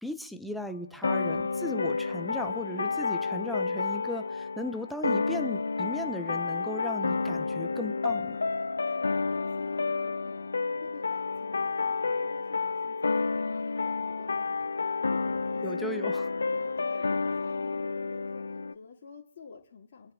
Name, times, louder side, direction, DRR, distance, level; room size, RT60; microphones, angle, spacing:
voice 1, 0.0-8.4 15.6-16.3, left 1 dB, ahead, 9 dB, 0.7 m, -37 dB
sound 1, 1.0-18.7, left 4 dB, 70° left, 0.7 m, -30 dB
voice 2, 8.8-16.1 16.5-20.1, left 5 dB, 45° left, -2 dB, 2.3 m, -51 dB
27.5 x 9.7 x 3.6 m, 0.64 s
figure-of-eight pair, 140°, 0 cm